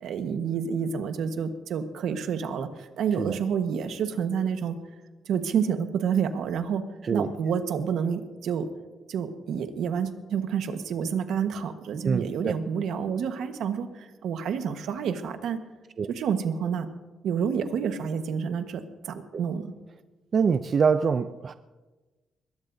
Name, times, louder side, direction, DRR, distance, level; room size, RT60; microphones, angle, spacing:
voice 1, 0.0-4.8 5.2-6.8 7.1-8.7 9.1-15.6 16.1-16.9 17.2-19.7, right 7 dB, 75° right, 1.3 m, -29 dB
voice 2, 12.0-12.5 16.0-16.1 19.3-19.4 20.3-21.5, right 6 dB, 40° right, 0.4 m, -24 dB
21.5 x 20.0 x 2.7 m
cardioid pair, 155°, 0 cm